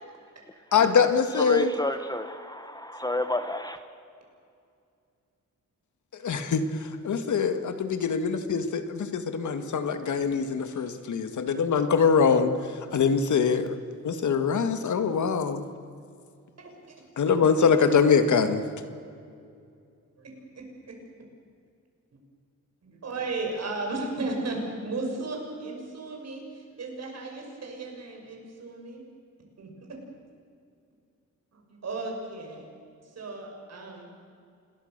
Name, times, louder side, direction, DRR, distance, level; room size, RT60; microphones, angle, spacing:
voice 1, 0.7-1.7 6.2-6.7 7.0-12.5 12.9-13.8 14.0-15.6 17.2-18.6, left 6 dB, 70° left, 9 dB, 1.9 m, -23 dB
voice 2, 1.4-3.8, left 1 dB, 15° left, 9 dB, 1.1 m, -30 dB
voice 3, 20.2-20.9 22.8-29.0 29.6-29.7 31.5-32.7 33.1-34.1, right 3 dB, 55° right, 1 dB, 6.6 m, -35 dB
28.0 x 21.5 x 6.8 m, 2.4 s
wide cardioid pair, 130°, 31 cm